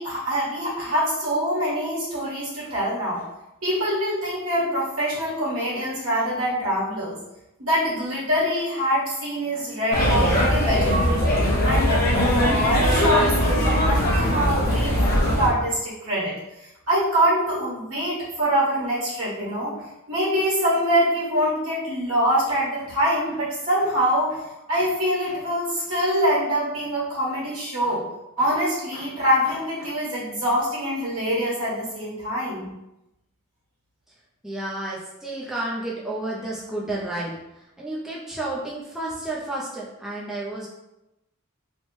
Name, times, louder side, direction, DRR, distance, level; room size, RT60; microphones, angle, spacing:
voice 1, 0.0-3.2 3.6-7.2 7.6-11.2 11.6-12.0 12.3-19.7 20.1-24.4 24.7-28.0 28.4-32.7, equal, 70° right, -7 dB, 1.3 m, -24 dB
sound 1, 9.9-15.5, equal, 45° left, 0.8 m, -20 dB
voice 2, 34.4-37.4 37.8-40.7, right 1 dB, ahead, -6 dB, 0.3 m, -31 dB
3.1 x 2.0 x 3.0 m, 0.91 s
head